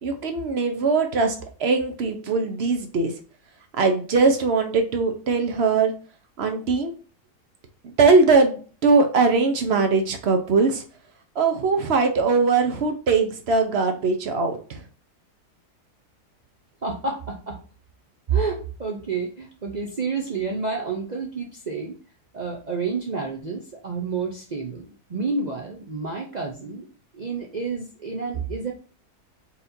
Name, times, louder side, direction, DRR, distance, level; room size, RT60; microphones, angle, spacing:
voice 1, 0.0-3.1 3.8-5.9 6.4-6.9 7.8-10.8 11.4-14.8, right 4 dB, 55° right, 5 dB, 0.7 m, -21 dB
voice 2, 16.8-17.6 18.3-22.0 22.3-26.8 27.1-28.7, right 4 dB, 75° right, 0 dB, 0.4 m, -29 dB
4.2 x 4.1 x 2.6 m, 0.38 s
omnidirectional pair, 1.7 m